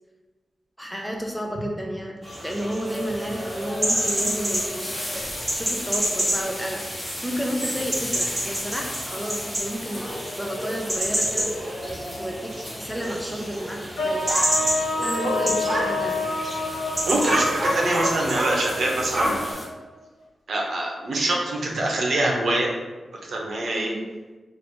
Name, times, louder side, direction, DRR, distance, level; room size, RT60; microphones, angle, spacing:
voice 1, 0.8-5.2 5.5-6.8 7.2-10.1 10.4-11.5 12.2-14.3 15.0-16.3 23.8-24.1, equal, ahead, 0 dB, 0.4 m, -31 dB
sound 1, 2.2-19.5, equal, 20° right, 1.1 m, -28 dB
sound 2, 2.8-19.7, left 1 dB, 30° left, 0.9 m, -38 dB
sound 3, 14.0-20.0, left 2 dB, 80° left, 0.7 m, -29 dB
voice 2, 17.1-19.6 20.5-22.7 23.3-23.9, right 1 dB, 65° right, -1 dB, 0.8 m, -24 dB
3.4 x 2.5 x 4.5 m, 1.2 s
wide cardioid pair, 155°, 0 cm